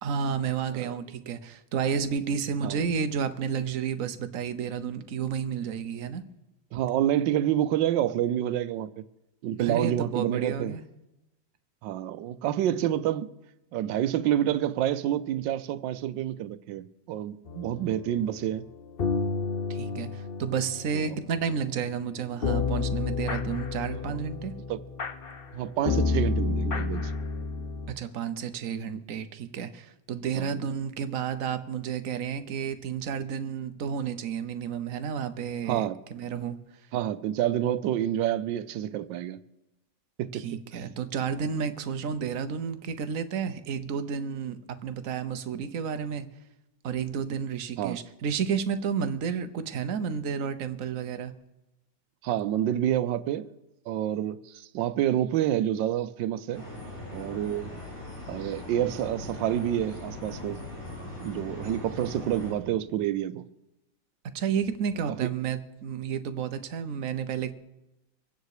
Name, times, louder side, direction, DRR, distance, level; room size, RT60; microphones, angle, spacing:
voice 1, 0.0-6.2 9.6-10.8 19.7-24.5 27.9-36.6 40.3-46.2 46.8-51.3 64.3-67.5, right 7 dB, 55° right, 1.2 m, -31 dB
voice 2, 6.7-9.0 9.4-10.8 11.8-13.3 13.7-18.6 20.9-21.1 24.1-24.2 24.7-24.8 25.5-27.1 30.3-30.6 35.7-36.0 36.9-39.4 40.2-40.8 47.8-48.0 52.2-53.5 53.9-56.6 57.1-57.7 58.3-60.6 61.2-63.5 65.1-65.3, right 11 dB, 90° right, 1.4 m, -28 dB
sound 1, 17.5-27.9, left 4 dB, 45° left, 0.8 m, -31 dB
sound 2, 56.5-62.5, left 1 dB, 70° left, 8.6 m, -40 dB
24.0 x 9.4 x 4.9 m
omnidirectional pair, 1.9 m